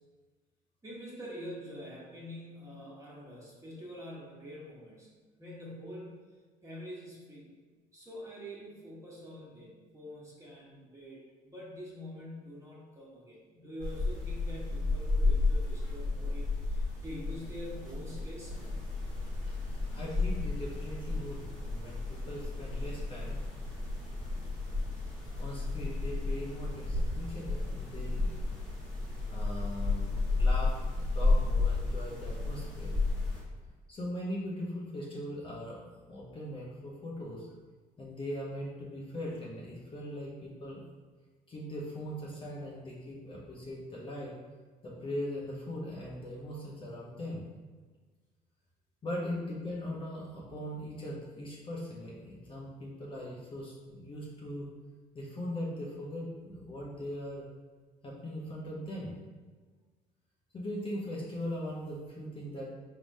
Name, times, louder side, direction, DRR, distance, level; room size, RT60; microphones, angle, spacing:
voice 1, 0.8-5.1 5.4-6.3 6.6-7.5 7.9-18.6 19.9-20.0 31.8-31.9, equal, 20° right, -6 dB, 1.4 m, -46 dB
sound 1, 13.8-33.4, left 3 dB, 5° left, 1.4 m, -32 dB
voice 2, 19.9-23.4 25.4-28.3 29.3-33.0 33.9-37.5 38.0-40.8 41.5-44.3 44.8-47.4 49.0-54.7 55.1-57.5 58.0-59.1 60.5-62.7, left 1 dB, 30° left, -5 dB, 0.8 m, -40 dB
4.6 x 3.5 x 2.7 m, 1.4 s
cardioid pair, 110°, 17 cm